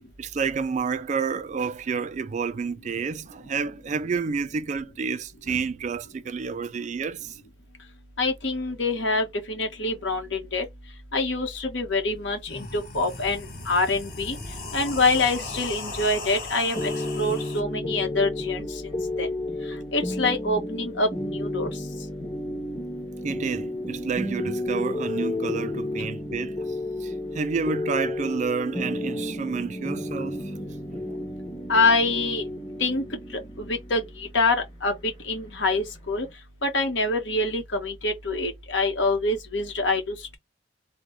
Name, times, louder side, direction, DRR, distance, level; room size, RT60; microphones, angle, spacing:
voice 1, 0.2-7.4 18.6-18.7 23.2-30.5 31.1-31.2, right 5 dB, 40° right, 0.3 m, -30 dB
voice 2, 8.2-10.6 11.1-14.4 14.7-16.9 17.2-19.3 19.9-21.7 31.7-32.4 32.8-33.0 33.7-34.6 34.8-34.9 35.3-36.3 36.6-40.4, left 3 dB, 80° left, 1.3 m, -25 dB
sound 1, 11.9-12.0 12.3-17.6, left 2 dB, 50° left, 1.4 m, -37 dB
sound 2, 16.7-36.3, left 1 dB, 30° left, 1.3 m, -32 dB
3.6 x 2.2 x 3.2 m
head